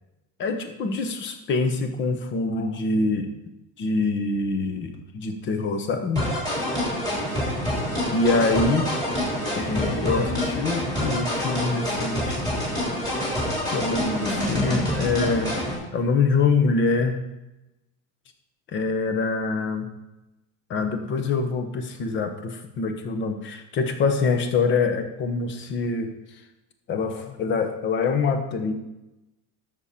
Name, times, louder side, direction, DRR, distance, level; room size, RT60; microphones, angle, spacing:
voice 1, 0.4-3.3 3.8-6.3 8.1-8.9 9.5-12.4 13.7-15.6 15.9-17.2 18.7-19.9 20.7-26.1 26.9-28.7, left 4 dB, 30° left, 7 dB, 1.0 m, -25 dB
sound 1, 6.2-15.8, equal, 10° left, 3.2 m, -27 dB
12.5 x 7.0 x 4.3 m, 0.96 s
cardioid pair, 170°, 38 cm